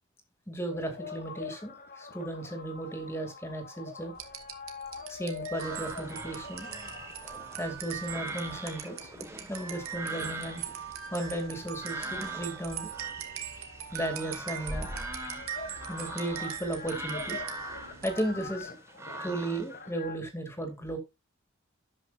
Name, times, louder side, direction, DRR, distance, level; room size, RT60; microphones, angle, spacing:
voice 1, 0.5-4.1 5.1-6.7 7.6-9.1 9.5-10.6 11.1-12.9 13.9-14.9 15.9-17.4 18.0-18.8 19.2-21.0, right 1 dB, 10° left, 6 dB, 2.4 m, -35 dB
sound 1, 0.7-9.5 10.2-11.9 13.1-13.2 13.4-20.1, left 5 dB, 45° left, 1.8 m, -45 dB
sound 2, 4.2-18.6, right 7 dB, 85° right, 2.0 m, -41 dB
sound 3, 5.5-19.8, right 2 dB, 15° right, 1.5 m, -43 dB
12.0 x 8.8 x 2.5 m, 0.23 s
head